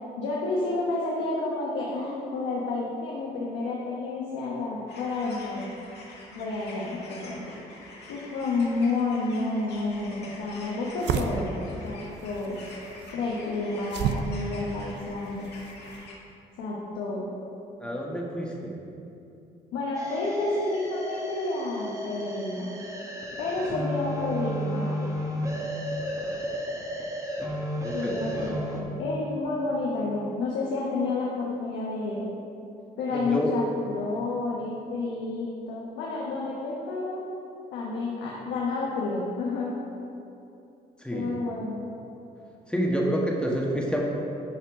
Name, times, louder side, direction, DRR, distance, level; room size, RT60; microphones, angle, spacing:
voice 1, 0.2-5.7 6.3-7.6 8.1-11.5 11.8-12.6 13.1-15.6 16.6-17.2 19.7-22.8 23.4-25.3 27.9-32.3 33.0-37.2 37.7-39.8 41.1-41.8, left 3 dB, 85° left, -4 dB, 1.0 m, -30 dB
sound 1, 4.9-16.1, left 2 dB, 65° left, 1.9 m, -46 dB
sound 2, 9.7-16.1, right 6 dB, 70° right, 0.5 m, -34 dB
voice 2, 17.8-18.7 27.8-28.2 33.1-33.5 41.0-41.3 42.7-44.1, equal, 5° left, -2 dB, 1.6 m, -28 dB
sound 3, 19.9-28.8, equal, 15° right, 1.6 m, -33 dB
10.5 x 4.4 x 4.9 m, 2.9 s
supercardioid pair, 55°, 18 cm